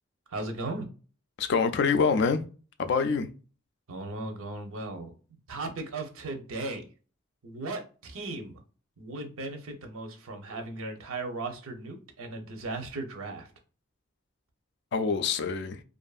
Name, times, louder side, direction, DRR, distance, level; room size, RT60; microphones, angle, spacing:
voice 1, 0.3-0.8 3.9-5.1 5.5-6.8 7.4-8.6 9.0-13.5, right 2 dB, 85° right, 0.7 m, -37 dB
voice 2, 1.4-2.4 2.8-3.3 14.9-15.8, left 5 dB, 55° left, 0.3 m, -25 dB
2.5 x 2.5 x 2.3 m
head